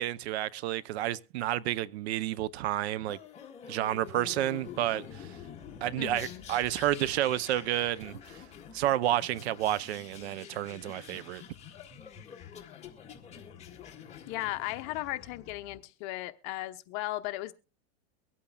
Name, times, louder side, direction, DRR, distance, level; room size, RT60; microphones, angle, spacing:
voice 1, 0.0-3.2 3.7-5.3 5.8-8.4 8.7-11.4, right 13 dB, 70° right, 0.6 m, -30 dB
sound 1, 3.1-15.8, left 8 dB, 20° left, 1.8 m, -47 dB
voice 2, 6.0-6.5 14.3-17.5, left 17 dB, 45° left, 0.8 m, -36 dB
23.5 x 8.5 x 2.3 m
supercardioid pair, 145°, 33 cm